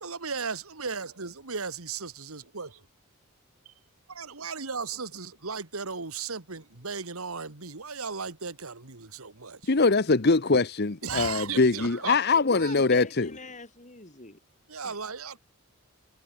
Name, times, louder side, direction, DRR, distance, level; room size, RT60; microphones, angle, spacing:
voice 1, 0.0-2.8 4.1-9.6 11.0-12.7 14.7-15.4, right 5 dB, 90° right, 2.0 m, -36 dB
voice 2, 9.7-13.3, left 3 dB, 50° left, 1.0 m, -23 dB
voice 3, 12.4-14.4 14.8-15.0, left 3 dB, 35° left, 5.5 m, -43 dB
head